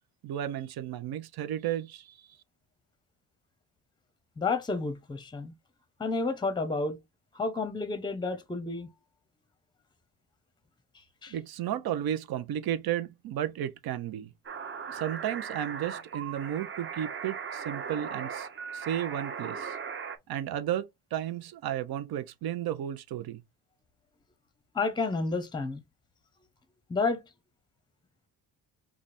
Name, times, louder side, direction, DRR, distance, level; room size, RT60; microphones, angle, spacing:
voice 1, 0.2-2.1 11.3-14.3 14.9-18.5 18.7-19.8 20.3-23.4, right 11 dB, 65° right, 0.9 m, -33 dB
voice 2, 4.4-5.5 6.0-7.0 7.3-8.9 11.2-11.3 24.7-25.8 26.9-27.2, left 3 dB, 10° left, 0.7 m, -30 dB
sound 1, 14.4-20.2, right 6 dB, 30° right, 0.8 m, -38 dB
4.8 x 2.5 x 4.2 m
cardioid pair, 155°, 40 cm